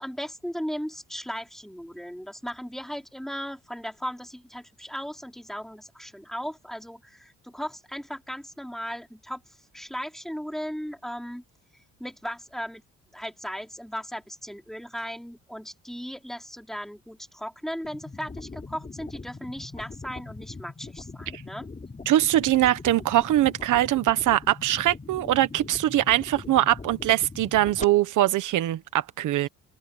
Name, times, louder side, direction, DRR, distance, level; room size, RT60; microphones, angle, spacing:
voice 1, 0.0-11.4 12.0-12.8 13.1-21.7, equal, ahead, 4.8 m, -37 dB
sound 1, 17.8-27.8, left 3 dB, 25° left, 3.6 m, -41 dB
voice 2, 22.1-29.5, right 14 dB, 80° right, 1.3 m, -22 dB
open air
cardioid pair, 90°, 30 cm